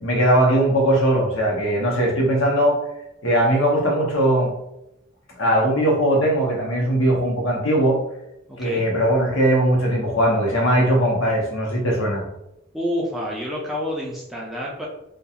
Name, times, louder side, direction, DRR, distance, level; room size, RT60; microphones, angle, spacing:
voice 1, 0.0-2.8 3.2-4.5 5.4-8.0 8.6-12.2, right 1 dB, 65° left, -2 dB, 0.8 m, -19 dB
voice 2, 8.5-8.8 12.7-14.9, equal, ahead, -4 dB, 0.4 m, -28 dB
2.3 x 2.3 x 2.7 m, 0.85 s
head